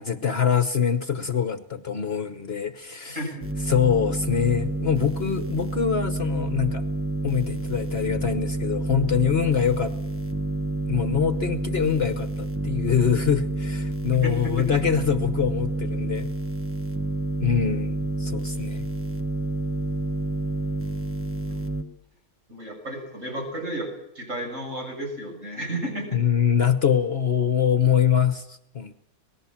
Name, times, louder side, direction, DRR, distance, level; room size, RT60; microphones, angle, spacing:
voice 1, 0.0-3.2 3.7-6.8 7.2-9.9 10.9-16.3 17.4-18.9 26.1-28.9, left 8 dB, 45° left, 10 dB, 1.2 m, -24 dB
voice 2, 3.1-3.5 14.2-14.7 21.5-21.6 22.5-23.9 24.2-26.2, right 1 dB, 60° right, 2 dB, 7.0 m, -32 dB
sound 1, 3.4-21.8, right 2 dB, 10° right, 1.4 m, -29 dB
26.0 x 19.0 x 7.3 m, 0.82 s
omnidirectional pair, 1.5 m